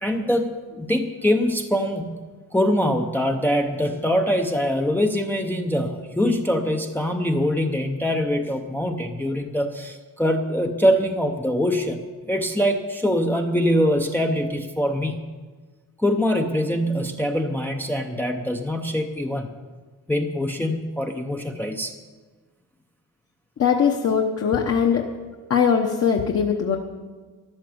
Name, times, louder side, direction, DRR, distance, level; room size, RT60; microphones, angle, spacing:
voice 1, 0.0-2.2 2.5-15.2 16.0-19.5 20.1-21.9, equal, 5° left, 3 dB, 0.6 m, -23 dB
voice 2, 23.6-25.0 25.5-26.8, left 7 dB, 40° left, 1 dB, 1.0 m, -20 dB
13.5 x 11.5 x 7.8 m, 1.4 s
cardioid pair, 175°, 38 cm